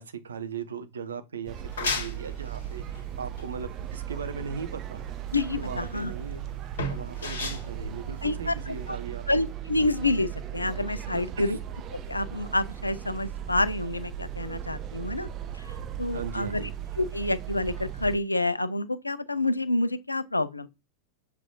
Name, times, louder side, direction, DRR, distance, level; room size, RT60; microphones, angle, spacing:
voice 1, 0.0-5.0 5.6-6.4 6.9-9.2 11.1-11.5 16.1-16.7, right 6 dB, 70° right, 0.7 m, -38 dB
sound 1, 1.5-8.9, left 2 dB, 65° left, 1.6 m, -36 dB
sound 2, 1.5-18.2, right 10 dB, 35° right, 0.4 m, -37 dB
voice 2, 5.3-6.1 8.2-9.0 9.3-11.6 12.1-15.3 15.5-15.7 16.0-16.6 17.0-20.7, left 2 dB, 85° left, 0.4 m, -28 dB
7.3 x 2.5 x 2.6 m
figure-of-eight pair, 90°, 0 cm